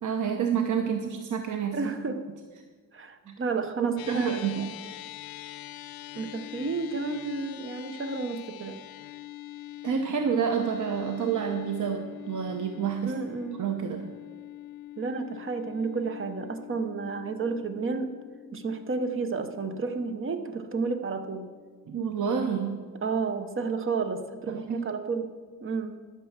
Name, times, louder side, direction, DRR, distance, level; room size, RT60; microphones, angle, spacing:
voice 1, 0.0-1.8 2.1-2.2 3.8-4.7 9.8-13.2 13.6-14.1 21.9-22.8 24.5-24.8, right 7 dB, 60° right, 5 dB, 0.9 m, -29 dB
voice 2, 1.7-2.2 2.9-4.4 6.2-8.8 13.0-13.6 15.0-18.1 18.5-21.5 23.0-25.3 25.6-25.9, right 4 dB, 35° right, 8 dB, 1.0 m, -31 dB
sound 1, 4.0-22.5, left 14 dB, 85° left, 0.6 m, -44 dB
11.0 x 9.2 x 7.3 m, 1.5 s
wide cardioid pair, 160°, 35 cm